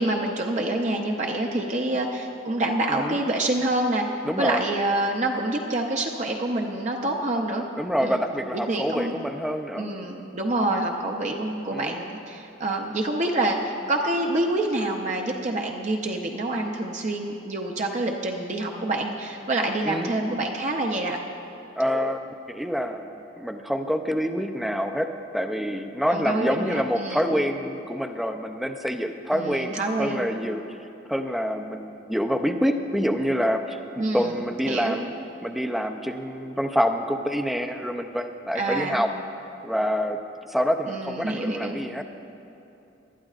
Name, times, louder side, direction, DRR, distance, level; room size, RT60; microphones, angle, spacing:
voice 1, 0.0-7.6 8.0-8.2 8.7-9.1 9.8-21.2 26.1-27.3 29.3-30.3 34.0-34.3 34.7-35.0 38.5-39.0 40.9-41.8, right 2 dB, 40° right, 1 dB, 0.6 m, -27 dB
voice 2, 4.2-4.6 7.8-9.9 11.7-11.9 19.8-20.1 21.8-23.0 23.4-25.1 25.3-29.7 30.0-30.6 31.1-35.1 35.4-39.1 39.6-40.2 40.5-42.0, equal, ahead, 6 dB, 0.5 m, -26 dB
20.5 x 12.0 x 2.4 m, 2.9 s
head